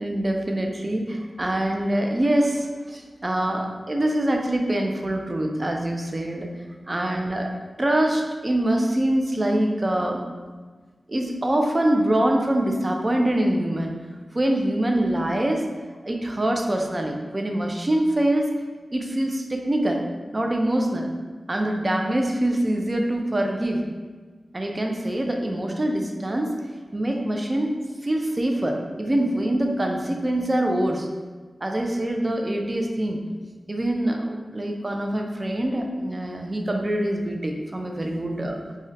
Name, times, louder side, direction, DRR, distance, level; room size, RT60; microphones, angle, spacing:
voice 1, 0.0-6.5 6.9-7.5 7.8-10.3 11.1-13.9 14.3-15.7 16.0-18.5 18.9-20.0 20.3-21.1 21.5-23.8 24.5-26.5 26.9-27.8 28.0-31.1 31.6-33.2 33.7-38.6, right 1 dB, 35° right, 2 dB, 0.4 m, -24 dB
2.4 x 2.1 x 3.9 m, 1.4 s
cardioid pair, 55°, 0 cm